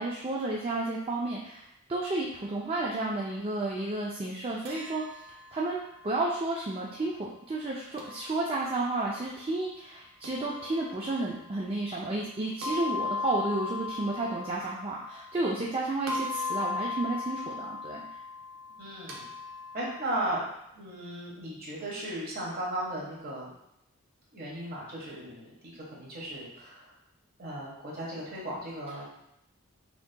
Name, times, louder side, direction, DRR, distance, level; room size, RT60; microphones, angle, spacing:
voice 1, 0.0-1.6 1.9-5.0 5.5-18.0, right 2 dB, 25° right, -4 dB, 0.4 m, -32 dB
sound 1, 4.7-6.8 8.0-9.0 10.2-11.4 12.6-15.7 16.1-20.5, left 4 dB, 65° right, 0.7 m, -38 dB
voice 2, 18.8-19.2 19.7-20.4 20.7-23.5 24.3-26.9 27.4-29.0, right 1 dB, 45° right, -4 dB, 1.4 m, -36 dB
5.8 x 2.8 x 2.2 m, 0.81 s
head